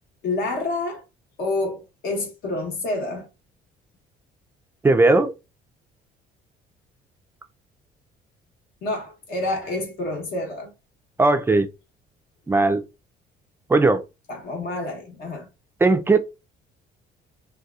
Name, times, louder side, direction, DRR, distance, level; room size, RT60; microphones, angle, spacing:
voice 1, 0.2-1.0 1.4-3.3 8.8-10.7 14.3-15.5, left 2 dB, 70° left, 1.0 m, -28 dB
voice 2, 4.8-5.3 11.2-11.7 12.5-12.8 13.7-14.0 15.8-16.2, right 3 dB, 15° right, 0.3 m, -17 dB
2.7 x 2.3 x 2.3 m
cardioid pair, 110°, 17 cm